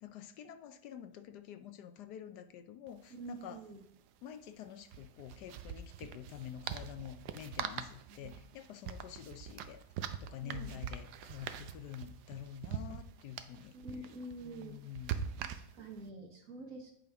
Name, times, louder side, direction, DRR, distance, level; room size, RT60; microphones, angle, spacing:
voice 1, 0.0-3.6 4.2-9.8 10.2-13.8 14.4-15.4, left 10 dB, 75° left, 9 dB, 1.1 m, -48 dB
sound 1, 2.9-3.0 3.2-3.3 4.8-16.0, right 8 dB, 75° right, 1.1 m, -43 dB
voice 2, 3.1-3.8 8.1-8.3 10.4-10.8 13.7-14.8 15.4-16.9, right 2 dB, 55° right, 2 dB, 1.4 m, -47 dB
9.6 x 5.1 x 3.4 m, 0.71 s
omnidirectional pair, 1.9 m